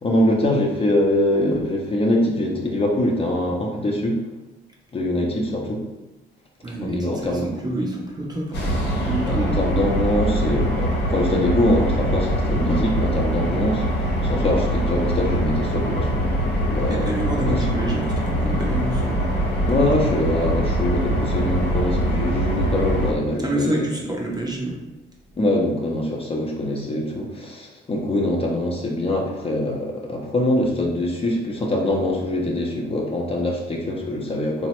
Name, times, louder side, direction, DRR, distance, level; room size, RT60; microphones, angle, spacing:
voice 1, 0.0-4.3 4.9-5.9 6.8-7.5 9.2-17.1 17.4-17.6 19.7-23.9 25.3-34.7, left 1 dB, 30° left, -1 dB, 0.6 m, -23 dB
voice 2, 6.6-8.7 9.0-9.6 16.9-19.8 23.4-24.8, right 1 dB, 20° right, -2 dB, 0.6 m, -28 dB
sound 1, 8.5-23.1, equal, 60° left, 0.8 m, -23 dB
3.1 x 2.0 x 2.9 m, 1.0 s
cardioid pair, 90°, 20 cm